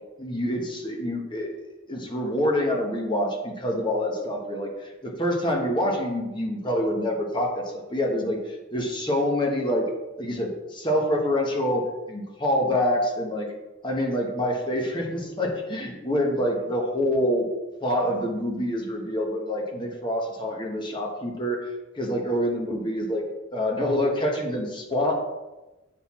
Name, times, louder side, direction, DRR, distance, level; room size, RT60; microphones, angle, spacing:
voice 1, 0.2-1.5 1.9-9.9 10.2-13.5 13.8-17.5 17.8-21.7 21.9-25.1, left 1 dB, 25° left, 1 dB, 1.1 m, -26 dB
7.9 x 4.0 x 4.2 m, 1.1 s
head